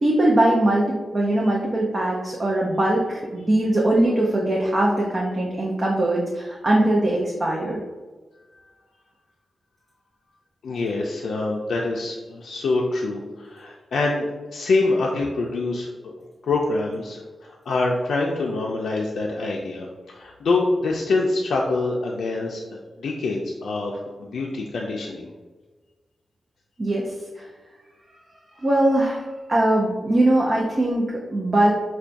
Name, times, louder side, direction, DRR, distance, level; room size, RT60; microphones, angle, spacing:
voice 1, 0.0-7.8 26.8-27.1 27.4-27.5 28.6-31.0 31.3-31.7, right 1 dB, 25° right, -3 dB, 0.5 m, -21 dB
voice 2, 10.6-16.1 16.4-25.3, left 3 dB, 90° left, -1 dB, 0.4 m, -25 dB
5.6 x 2.2 x 2.5 m, 1.3 s
wide cardioid pair, 180°, 0 cm